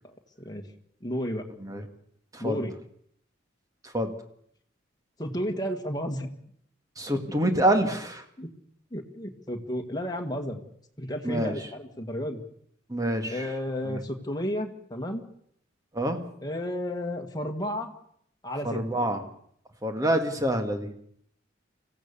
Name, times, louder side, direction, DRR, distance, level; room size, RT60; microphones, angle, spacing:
voice 1, 1.0-1.4 2.4-2.7 5.2-6.3 7.3-7.4 8.4-8.5 8.9-10.6 11.0-12.4 13.3-15.2 16.4-17.9 18.4-18.8, equal, 20° left, 3 dB, 1.9 m, -32 dB
voice 2, 7.0-8.2 11.2-11.5 12.9-13.5 13.9-14.0 15.9-16.2 18.6-19.2 19.8-20.9, right 1 dB, 20° right, 6 dB, 2.0 m, -26 dB
25.0 x 16.0 x 6.9 m, 0.67 s
head